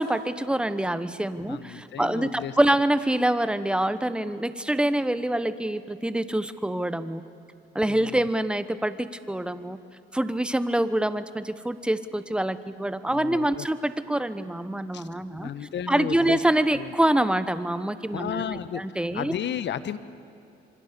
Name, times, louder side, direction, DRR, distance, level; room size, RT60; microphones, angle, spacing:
voice 1, 0.0-7.2 7.7-9.8 10.1-15.5 15.9-19.3, right 1 dB, 5° right, 12 dB, 1.1 m, -26 dB
voice 2, 1.4-2.6 7.9-8.2 13.1-13.7 14.9-15.1 15.4-16.4 16.7-16.9 18.1-20.0, left 9 dB, 65° left, 14 dB, 1.1 m, -33 dB
26.0 x 24.5 x 6.9 m, 2.7 s
cardioid pair, 90°, 20 cm